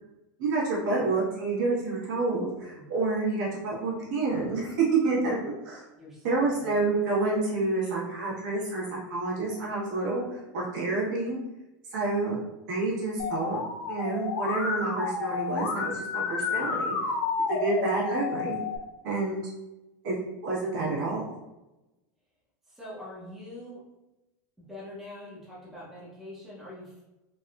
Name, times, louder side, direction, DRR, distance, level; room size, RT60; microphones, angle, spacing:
voice 1, 0.4-5.8 6.2-11.4 11.9-12.4 12.7-13.6 13.9-16.9 17.6-18.6 19.0-19.4 20.0-20.1 20.4-21.2, right 3 dB, 65° right, -5 dB, 1.3 m, -28 dB
voice 2, 6.0-6.7 22.7-23.8 24.6-27.0, left 1 dB, 5° right, -7 dB, 0.6 m, -44 dB
Musical instrument, 13.2-18.8, left 4 dB, 55° left, 0.5 m, -30 dB
3.4 x 2.5 x 2.3 m, 0.98 s
supercardioid pair, 170°, 10 cm